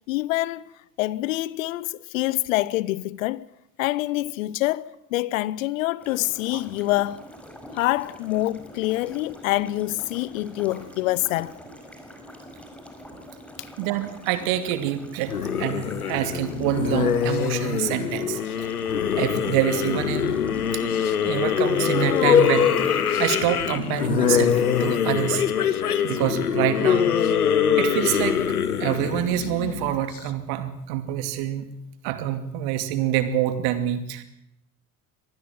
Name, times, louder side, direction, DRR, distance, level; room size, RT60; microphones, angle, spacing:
voice 1, 0.1-0.7 1.0-3.5 3.8-7.2 7.7-11.6 13.6-13.7, left 17 dB, 60° left, 0.9 m, -26 dB
sound 1, 6.0-24.9, equal, 5° left, 5.1 m, -44 dB
voice 2, 13.8-15.3 15.6-18.7 19.1-20.2 20.7-25.5 26.0-27.1 27.8-28.4 28.8-31.7 32.0-34.2, right 12 dB, 55° right, 2.5 m, -26 dB
sound 2, 15.3-30.2, left 8 dB, 80° left, 1.4 m, -23 dB
24.5 x 19.0 x 7.5 m
figure-of-eight pair, 65°, 45 cm